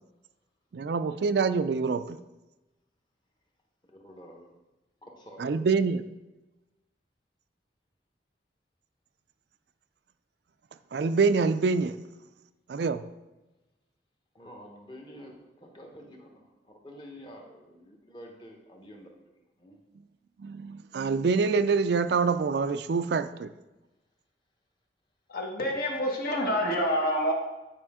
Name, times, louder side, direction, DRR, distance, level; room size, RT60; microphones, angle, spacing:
voice 1, 0.7-2.2 5.4-6.0 10.9-12.0 12.7-13.1 20.4-23.5, right 4 dB, 65° right, 11 dB, 0.4 m, -26 dB
voice 2, 3.9-4.5 5.0-5.6 14.3-19.1 19.6-19.8, equal, 25° left, 1 dB, 1.1 m, -48 dB
voice 3, 25.3-27.3, equal, 55° left, 0 dB, 1.3 m, -27 dB
9.6 x 5.0 x 3.6 m, 1.0 s
head